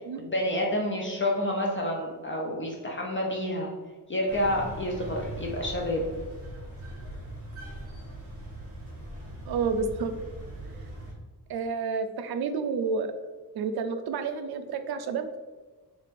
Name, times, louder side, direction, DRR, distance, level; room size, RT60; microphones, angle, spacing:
voice 1, 0.2-3.7 4.1-6.1, left 1 dB, 30° left, -1 dB, 0.6 m, -29 dB
sound 1, 4.3-11.1, right 1 dB, 35° right, 1.4 m, -40 dB
voice 2, 9.4-10.1 11.5-13.1 13.6-15.4, right 5 dB, 65° right, 8 dB, 0.5 m, -30 dB
3.5 x 3.1 x 4.1 m, 1.3 s
wide cardioid pair, 135°, 40 cm